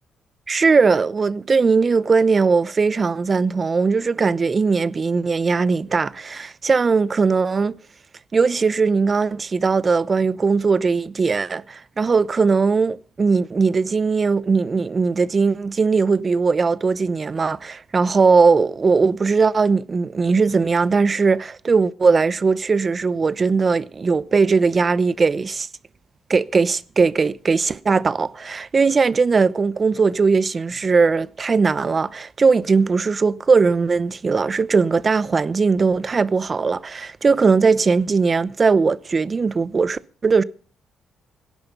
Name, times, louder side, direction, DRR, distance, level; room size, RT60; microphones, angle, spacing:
voice 1, 0.5-7.8 8.3-25.7 26.3-40.4, right 4 dB, 35° right, 0.8 m, -19 dB
18.0 x 10.5 x 5.3 m
cardioid pair, 90°, 0 cm